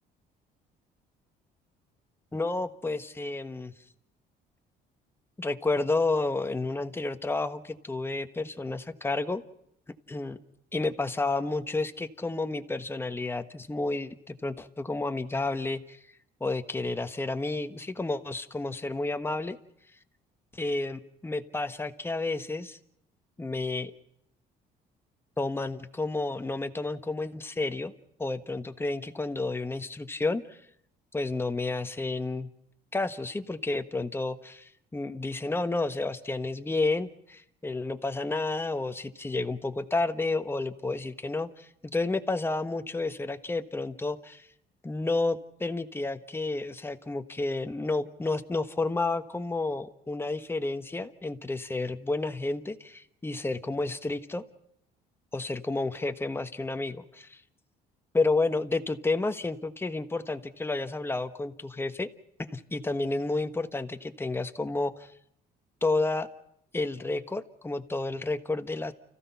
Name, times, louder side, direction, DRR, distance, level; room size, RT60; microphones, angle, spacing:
voice 1, 2.3-3.7 5.4-9.4 10.1-10.4 10.7-16.0 16.4-19.6 20.5-22.8 23.4-23.9 25.4-27.9 28.2-30.6 31.1-32.5 32.9-44.5 44.8-54.4 55.3-57.4 58.1-62.1 62.4-65.1 65.8-66.3 66.7-68.9, left 3 dB, 15° left, 8 dB, 1.3 m, -31 dB
30.0 x 15.5 x 5.8 m, 0.74 s
cardioid pair, 110°, 17 cm